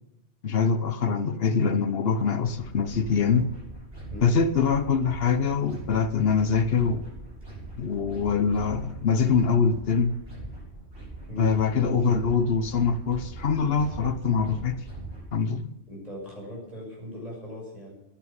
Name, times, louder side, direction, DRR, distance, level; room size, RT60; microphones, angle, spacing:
voice 1, 0.4-3.5 4.2-7.1 7.8-10.1 11.4-14.8 15.3-15.7, left 5 dB, 55° left, 1.0 m, -24 dB
sound 1, 2.4-15.2, right 1 dB, 60° right, 7.4 m, -42 dB
voice 2, 15.9-17.9, equal, 30° right, 6.4 m, -38 dB
11.0 x 10.5 x 8.7 m
omnidirectional pair, 1.2 m